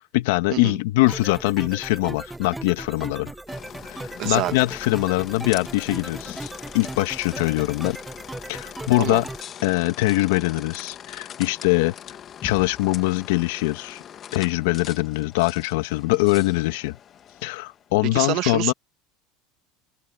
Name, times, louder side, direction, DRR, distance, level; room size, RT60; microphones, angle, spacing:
voice 1, 0.0-3.3 3.8-6.5 6.7-8.0 8.5-9.3 9.6-11.9 12.4-14.0 14.3-17.0 17.4-18.7, left 20 dB, 75° left, 1.6 m, -23 dB
sound 1, 1.0-9.4, right 2 dB, 10° right, 0.9 m, -37 dB
sound 2, 3.5-17.9, left 9 dB, 40° left, 1.6 m, -41 dB
voice 2, 4.2-4.5 9.0-9.2 18.1-18.7, right 17 dB, 60° right, 2.0 m, -26 dB
open air
supercardioid pair, 100°, 0 cm